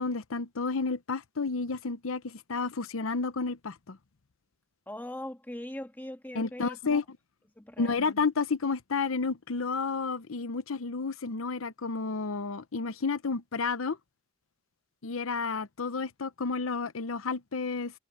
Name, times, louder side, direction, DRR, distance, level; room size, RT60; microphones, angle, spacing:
voice 1, 0.0-4.0 6.3-7.0 7.8-14.0 15.0-17.9, left 4 dB, 80° left, 0.8 m, -31 dB
voice 2, 4.9-7.0 7.6-8.0, left 1 dB, 10° left, 1.8 m, -41 dB
head